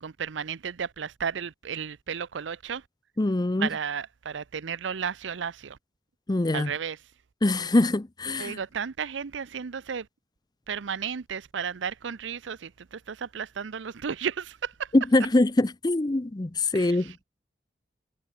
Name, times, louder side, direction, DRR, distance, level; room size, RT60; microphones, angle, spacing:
voice 1, 0.0-2.8 3.6-5.8 6.5-7.1 8.3-10.1 10.7-14.9 16.7-17.2, right 7 dB, 85° right, 0.6 m, -33 dB
voice 2, 3.2-3.7 6.3-6.7 7.4-8.6 14.9-17.2, left 2 dB, 20° left, 0.6 m, -23 dB
head